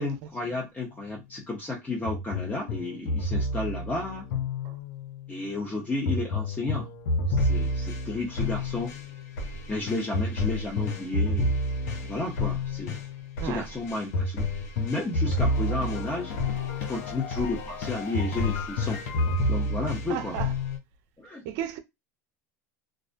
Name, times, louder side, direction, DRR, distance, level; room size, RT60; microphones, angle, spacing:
voice 1, 0.0-4.3 5.3-6.9 7.3-8.9 9.7-11.6 12.0-13.0 13.4-14.5 14.8-16.3 16.9-19.0 19.5-20.4 21.2-21.4, left 2 dB, 15° left, 0.8 m, -32 dB
sound 1, 2.1-5.2 6.0-20.8, left 2 dB, 75° left, 0.7 m, -29 dB
voice 2, 20.1-20.5 21.4-21.8, right 11 dB, 65° right, 0.5 m, -34 dB
2.4 x 2.1 x 2.5 m
hypercardioid pair, 90°, 9 cm